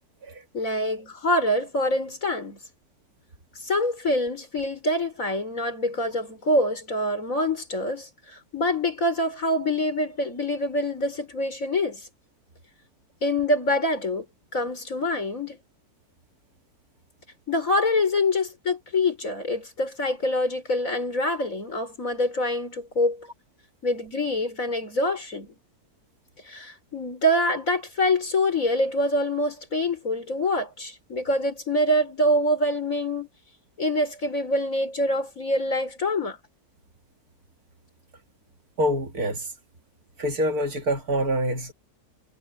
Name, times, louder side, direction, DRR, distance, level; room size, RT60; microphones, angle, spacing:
voice 1, 0.5-2.6 3.6-12.1 13.2-14.3 14.5-15.6 17.5-23.3 23.8-25.6 26.4-33.3 33.8-36.4, left 1 dB, 50° left, 5.2 m, -25 dB
voice 2, 38.8-39.5 40.2-41.7, equal, 60° right, 2.2 m, -26 dB
omnidirectional pair, 1.9 m